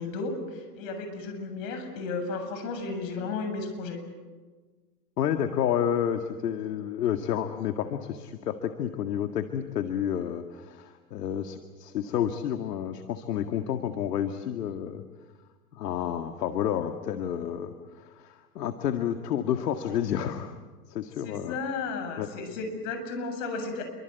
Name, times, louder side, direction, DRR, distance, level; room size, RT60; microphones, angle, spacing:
voice 1, 0.0-4.0 21.2-23.8, left 4 dB, 50° left, 7 dB, 7.6 m, -34 dB
voice 2, 5.2-15.0 15.7-20.5 20.9-21.6 22.2-22.3, left 9 dB, 70° left, 6 dB, 2.0 m, -30 dB
28.5 x 24.5 x 8.3 m, 1.4 s
hypercardioid pair, 140°, 49 cm